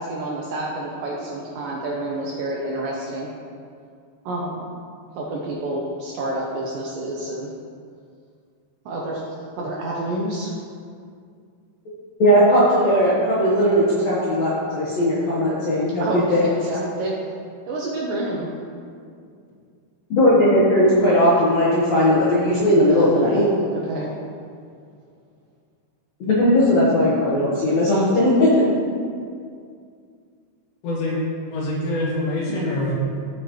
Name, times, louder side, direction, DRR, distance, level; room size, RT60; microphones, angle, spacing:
voice 1, 0.0-3.3 4.3-4.7 5.2-7.5 8.9-9.2 9.6-10.6 16.0-17.2 17.7-18.5 22.9-23.3 23.7-24.1, right 1 dB, 75° right, -3 dB, 2.1 m, -28 dB
voice 2, 12.2-16.5 20.1-23.4 26.2-28.6, equal, 65° left, -8 dB, 1.7 m, -18 dB
voice 3, 30.8-31.2 31.5-33.0, left 1 dB, 80° left, -5 dB, 3.6 m, -25 dB
14.5 x 5.0 x 3.1 m, 2.2 s
omnidirectional pair, 4.8 m